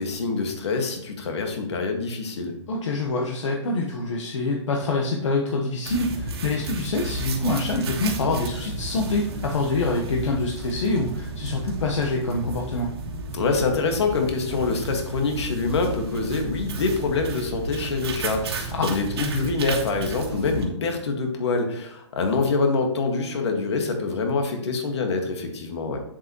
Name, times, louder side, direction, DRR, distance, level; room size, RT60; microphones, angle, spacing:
voice 1, 0.0-2.5 13.3-26.0, left 3 dB, 65° left, 4 dB, 1.8 m, -25 dB
voice 2, 2.7-12.9 18.8-18.9, left 3 dB, 80° left, 0 dB, 1.2 m, -26 dB
sound 1, 5.8-20.6, right 2 dB, 55° right, 1.6 m, -33 dB
8.0 x 7.3 x 3.0 m, 0.75 s
hypercardioid pair, 165°, 15 cm